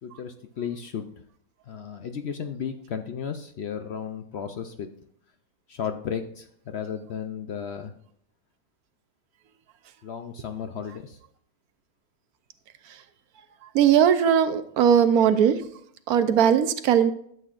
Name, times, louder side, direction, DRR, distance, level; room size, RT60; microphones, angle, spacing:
voice 1, 0.0-1.1 1.7-4.9 5.7-7.9 10.0-11.2, left 7 dB, 60° left, 7 dB, 0.7 m, -34 dB
voice 2, 13.7-15.6 16.1-17.1, right 8 dB, 80° right, 11 dB, 1.2 m, -19 dB
12.0 x 7.9 x 2.5 m, 0.65 s
omnidirectional pair, 1.6 m